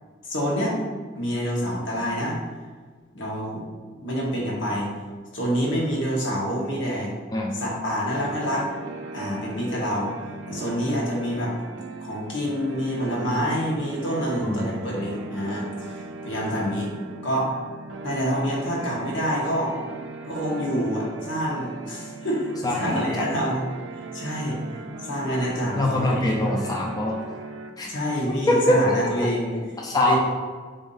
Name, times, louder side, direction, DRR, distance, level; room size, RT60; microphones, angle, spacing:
voice 1, 0.2-0.8 1.1-2.4 3.1-3.7 4.0-4.9 5.3-7.1 7.5-8.7 9.1-10.1 10.5-11.5 12.0-16.9 17.2-17.5 18.0-19.7 20.2-23.6 24.1-24.6 25.0-26.5 27.9-29.5 30.0-30.2, equal, 75° left, -3 dB, 1.0 m, -27 dB
sound 1, 8.1-27.7, right 3 dB, 80° right, 0.4 m, -38 dB
voice 2, 14.4-14.9 22.6-23.0 25.7-27.2 27.8-27.9 28.5-29.3 29.5-30.2, left 1 dB, 20° left, -1 dB, 0.4 m, -23 dB
3.6 x 2.6 x 3.9 m, 1.5 s
head